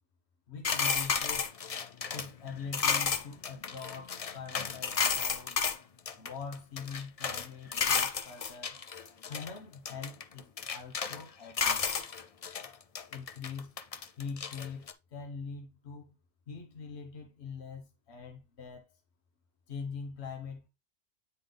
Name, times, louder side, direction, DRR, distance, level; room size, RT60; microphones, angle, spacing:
voice 1, 0.5-1.5 2.1-5.5 6.2-8.8 9.3-11.9 13.1-13.7 14.2-16.1 16.5-19.0 19.7-20.7, left 5 dB, 70° left, 1.4 m, -43 dB
sound 1, 0.6-5.8 6.1-7.5 7.7-9.5 9.9-11.2 11.6-12.7 12.9-14.9, left 6 dB, 45° left, 0.5 m, -32 dB
9.2 x 3.9 x 3.4 m
omnidirectional pair, 1.2 m